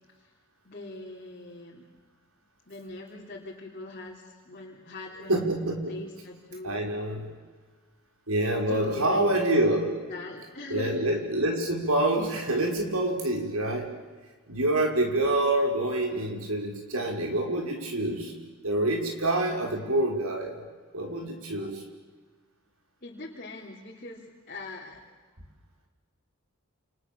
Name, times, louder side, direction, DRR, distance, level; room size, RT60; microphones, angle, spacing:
voice 1, 0.6-1.9 2.7-6.8 8.7-9.3 10.1-10.9 23.0-25.0, left 2 dB, 40° left, -3 dB, 3.5 m, -41 dB
voice 2, 5.3-5.9 6.6-7.3 8.3-10.0 10.7-13.9 14.5-18.3 18.6-20.6 20.9-21.8, right 1 dB, 80° right, 2 dB, 5.8 m, -26 dB
29.5 x 28.5 x 7.1 m, 1.4 s
head